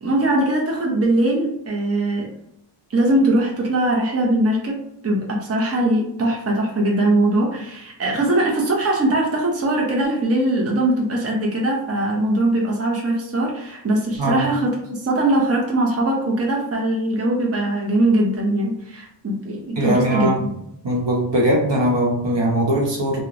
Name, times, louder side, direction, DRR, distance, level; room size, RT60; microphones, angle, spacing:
voice 1, 0.0-2.3 2.9-20.5, right 1 dB, 35° right, -2 dB, 0.6 m, -21 dB
voice 2, 19.7-20.4 20.8-23.2, right 1 dB, 75° right, -2 dB, 0.9 m, -20 dB
2.9 x 2.1 x 2.4 m, 0.76 s
wide cardioid pair, 75°, 44 cm